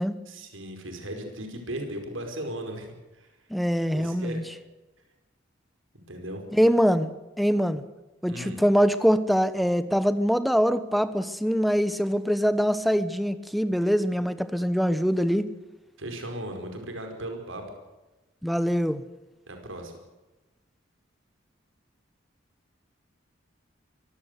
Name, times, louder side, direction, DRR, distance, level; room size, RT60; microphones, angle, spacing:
voice 1, 0.3-2.9 3.1-3.3 3.9-4.4 6.1-6.4 8.3-8.6 16.0-17.6 19.5-19.9, right 1 dB, 90° right, 5 dB, 5.0 m, -36 dB
voice 2, 3.5-4.4 6.5-7.1 7.4-7.8 8.2-15.5 18.4-19.0, equal, ahead, 12 dB, 1.0 m, -23 dB
23.5 x 16.0 x 8.3 m, 1.1 s
head